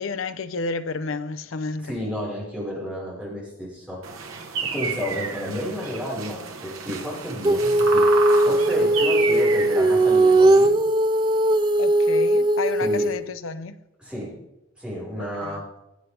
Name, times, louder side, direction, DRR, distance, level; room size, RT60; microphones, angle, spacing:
voice 1, 0.0-1.9 11.8-13.8 15.2-15.6, left 4 dB, 75° left, 0.6 m, -31 dB
voice 2, 1.8-4.0 4.6-8.0 8.4-10.7 12.8-13.1 14.0-14.3 14.8-15.6, equal, 5° right, 4.7 m, -31 dB
sound 1, 4.0-10.7, right 5 dB, 85° right, 1.2 m, -31 dB
Female singing, 7.4-13.2, right 1 dB, 20° right, 0.4 m, -19 dB
18.5 x 8.0 x 3.4 m
head